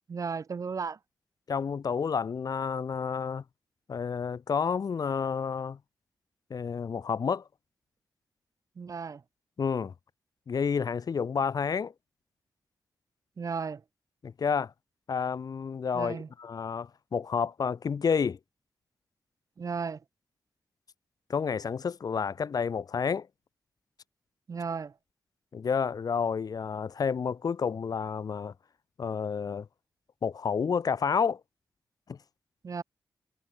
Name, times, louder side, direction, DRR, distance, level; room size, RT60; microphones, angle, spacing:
voice 1, 0.1-1.0 8.8-9.2 13.4-13.8 15.9-16.3 19.6-20.0 24.5-24.9 32.6-32.8, right 5 dB, 55° right, 0.7 m, -34 dB
voice 2, 1.5-3.4 3.9-5.8 6.5-7.4 9.6-9.9 10.5-11.9 14.2-14.7 15.1-18.4 21.3-23.3 25.5-28.5 29.0-29.7 30.2-31.4 32.1-32.2, left 6 dB, 65° left, 1.4 m, -30 dB
cardioid pair, 70°, 7 cm